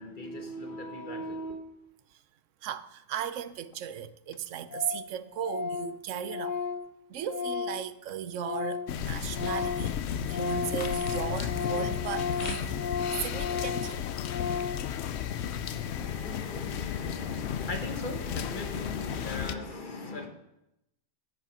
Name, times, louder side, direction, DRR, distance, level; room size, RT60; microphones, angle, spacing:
voice 1, 0.0-1.6 15.9-20.3, left 2 dB, 45° left, 1.2 m, -38 dB
voice 2, 2.6-6.6 7.1-12.8 13.2-14.0, right 10 dB, 80° right, 1.0 m, -36 dB
Organ, 3.7-3.8 4.0-4.1 4.3-4.4 4.7-5.1 5.4-9.0 9.2-14.9, left 6 dB, 85° left, 1.1 m, -34 dB
sound 1, 8.9-19.5, left 9 dB, 65° left, 0.8 m, -34 dB
9.9 x 7.4 x 5.4 m
omnidirectional pair, 1.3 m